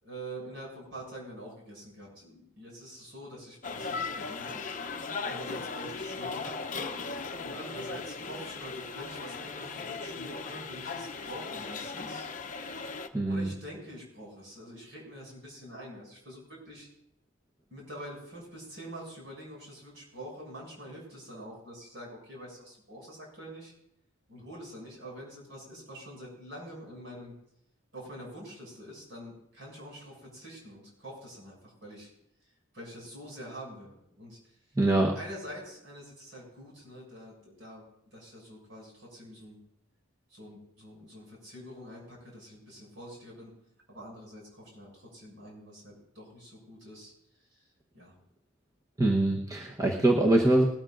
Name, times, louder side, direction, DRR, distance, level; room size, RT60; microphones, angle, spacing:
voice 1, 0.0-4.6 5.2-6.7 7.4-12.3 13.2-16.9 17.7-23.7 24.3-27.3 27.9-32.1 32.7-34.8 35.1-37.8 38.1-39.6 40.3-43.5 43.9-47.1 47.4-47.7 47.9-48.1, equal, 60° right, -3 dB, 6.8 m, -45 dB
sound 1, 3.6-13.1, left 4 dB, 40° left, 0.7 m, -37 dB
voice 2, 13.1-13.5 34.8-35.2 49.0-50.6, right 1 dB, 15° right, -2 dB, 1.0 m, -24 dB
20.5 x 13.5 x 2.6 m, 0.74 s
head